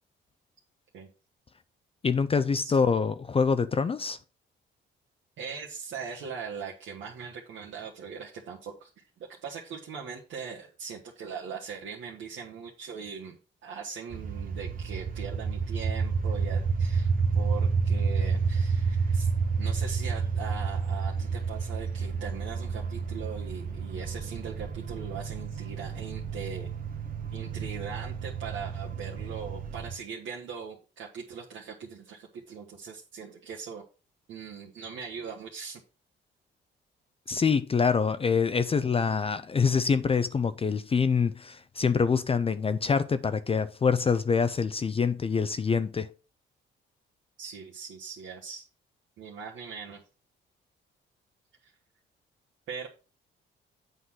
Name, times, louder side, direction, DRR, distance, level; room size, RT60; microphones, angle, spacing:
voice 1, 2.0-4.2 37.3-46.1, left 5 dB, 30° left, 0.5 m, -25 dB
voice 2, 5.4-9.0 9.4-19.3 19.6-26.7 27.3-33.8 34.3-35.8 47.4-48.6 49.2-50.0 51.6-51.7 52.7-52.9, right 6 dB, 75° right, 1.4 m, -40 dB
sound 1, 14.1-29.9, right 5 dB, 45° right, 1.1 m, -30 dB
8.1 x 3.9 x 6.1 m
cardioid pair, 90°, 20 cm